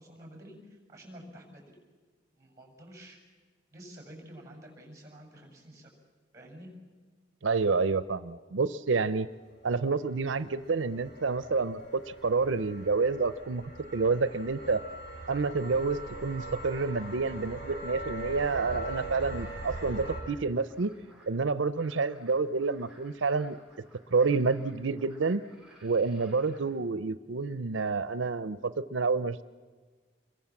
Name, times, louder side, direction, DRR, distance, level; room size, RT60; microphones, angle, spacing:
voice 1, 0.0-1.6 2.3-3.2 3.7-6.0 6.3-6.7, equal, 20° right, 3 dB, 6.4 m, -49 dB
voice 2, 7.4-9.3 9.6-13.6 13.9-14.8 15.3-20.9 21.3-23.6 24.1-25.4 25.8-29.4, right 4 dB, 90° right, 13 dB, 0.6 m, -29 dB
sound 1, 9.6-20.2, right 1 dB, 60° left, 7.8 m, -41 dB
sound 2, 18.3-26.6, right 1 dB, 5° right, 6.9 m, -58 dB
27.0 x 22.0 x 7.3 m, 1.4 s
head